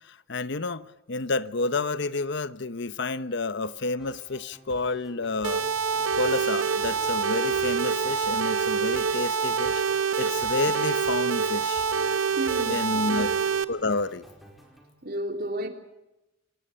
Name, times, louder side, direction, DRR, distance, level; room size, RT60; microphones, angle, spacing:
voice 1, 0.1-5.6 6.2-9.8 10.2-11.9 12.7-13.3 13.7-14.2, left 3 dB, 60° left, 0.9 m, -30 dB
sound 1, 3.6-14.9, right 1 dB, ahead, 4.8 m, -51 dB
sound 2, 5.4-13.6, right 6 dB, 90° right, 1.0 m, -26 dB
voice 2, 9.4-9.8 12.4-13.3 15.0-15.7, right 1 dB, 50° right, 3.0 m, -33 dB
27.0 x 18.0 x 6.9 m
head